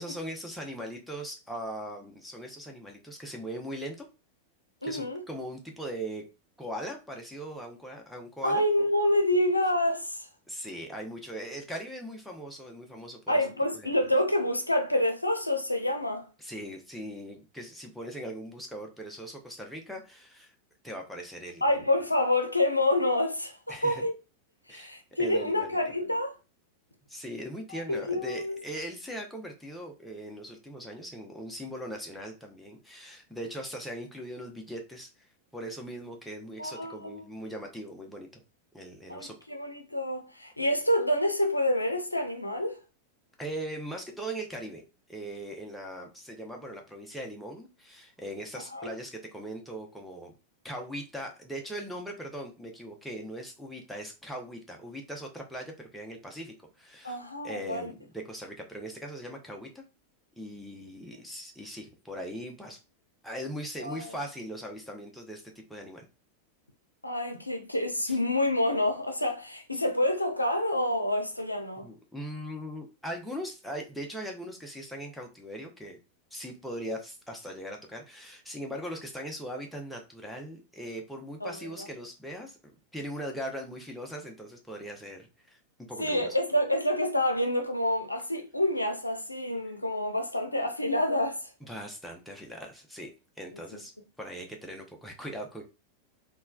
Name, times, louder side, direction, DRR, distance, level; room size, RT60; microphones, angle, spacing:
voice 1, 0.0-4.1 4.8-6.2 6.6-8.6 10.5-13.4 13.8-14.0 16.4-20.5 20.8-21.6 23.7-24.0 24.7-25.8 27.1-35.3 35.5-38.3 38.7-39.4 43.4-44.8 45.1-50.3 50.6-57.2 57.4-59.8 60.4-62.8 63.2-66.1 68.1-68.2 71.8-76.0 76.3-82.6 82.9-85.6 85.9-86.3 91.6-93.1 93.4-93.9 94.2-95.6, equal, ahead, 0.7 m, -40 dB
voice 2, 4.8-5.2 8.4-10.3 13.3-16.3 21.6-24.1 24.7-26.3 27.7-28.6 36.6-37.2 39.1-42.8 48.7-49.0 57.0-57.9 63.8-64.1 67.0-71.9 81.4-81.9 86.0-91.5, left 1 dB, 85° left, 0.5 m, -28 dB
3.2 x 2.2 x 2.3 m
figure-of-eight pair, 90°, 0 cm